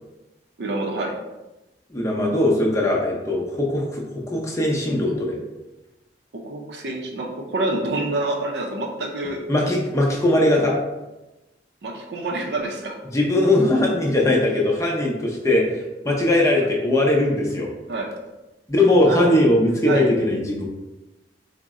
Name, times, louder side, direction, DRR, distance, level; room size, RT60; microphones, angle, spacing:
voice 1, 0.6-1.2 6.3-9.4 11.8-13.0 17.9-18.1 19.1-19.4 19.9-20.1, right 2 dB, 65° right, 0 dB, 0.5 m, -27 dB
voice 2, 1.9-5.4 9.5-10.8 13.1-17.7 18.7-20.7, left 1 dB, 15° left, -2 dB, 0.6 m, -20 dB
3.8 x 2.1 x 3.6 m, 1.0 s
head